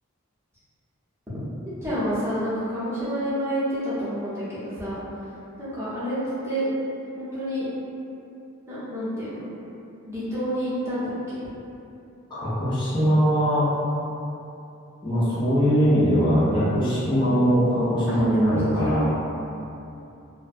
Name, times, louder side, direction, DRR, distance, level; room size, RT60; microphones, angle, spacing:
voice 1, 1.6-5.0 5.6-6.2 6.4-6.6 7.2-7.7 8.7-9.4 10.1-11.4 18.1-18.2 18.5-19.0, equal, 10° right, -12 dB, 0.7 m, -29 dB
voice 2, 12.3-13.7 15.0-19.0, equal, 20° left, -13 dB, 0.5 m, -21 dB
2.5 x 2.1 x 2.6 m, 2.8 s
head